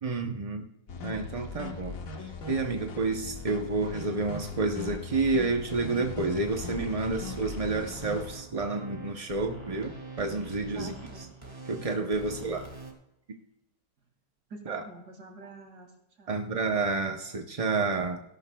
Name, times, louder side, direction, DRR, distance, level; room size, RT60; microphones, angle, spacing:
voice 1, 0.0-0.7 1.0-2.0 2.5-10.9 11.7-12.6 14.7-14.8 16.3-18.2, right 3 dB, 50° right, 4 dB, 0.4 m, -29 dB
sound 1, 0.9-8.3, left 4 dB, 55° left, 1.6 m, -40 dB
sound 2, 5.6-12.9, right 2 dB, 15° right, 2.0 m, -44 dB
voice 2, 10.7-11.3 12.3-12.6 14.5-16.4, right 3 dB, 70° right, 2 dB, 2.7 m, -47 dB
17.5 x 12.0 x 2.3 m, 0.86 s
omnidirectional pair, 1.8 m